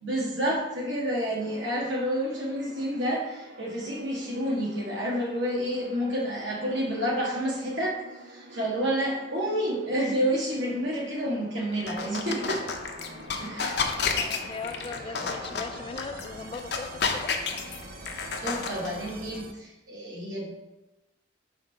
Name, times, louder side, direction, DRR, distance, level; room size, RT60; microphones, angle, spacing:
voice 1, 0.0-12.6 13.4-13.8 18.4-20.5, equal, 75° right, -4 dB, 1.4 m, -29 dB
sound 1, 1.4-19.5, right 2 dB, 50° right, 0.5 m, -47 dB
sound 2, 11.7-19.2, left 5 dB, 60° left, 0.7 m, -32 dB
voice 2, 14.1-17.6, left 4 dB, 30° left, 9 dB, 0.4 m, -39 dB
5.6 x 3.6 x 5.5 m, 0.98 s
head